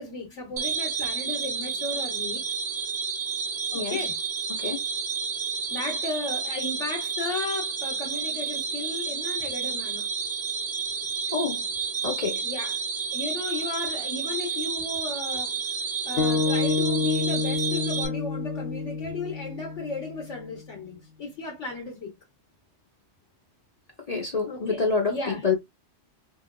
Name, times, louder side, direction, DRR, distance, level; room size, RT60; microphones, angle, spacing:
voice 1, 0.0-2.4 3.7-4.2 5.7-10.1 12.4-12.7 13.1-22.1 24.5-25.5, left 3 dB, 90° left, 1.7 m, -35 dB
sound 1, 0.6-18.1, right 6 dB, 65° right, 1.5 m, -30 dB
voice 2, 3.7-4.1 4.5-4.8 11.3-11.7 12.0-12.4 24.1-25.6, left 4 dB, 35° left, 0.8 m, -27 dB
sound 2, 16.2-20.5, left 4 dB, 65° left, 0.9 m, -28 dB
5.4 x 2.5 x 2.2 m
omnidirectional pair, 1.2 m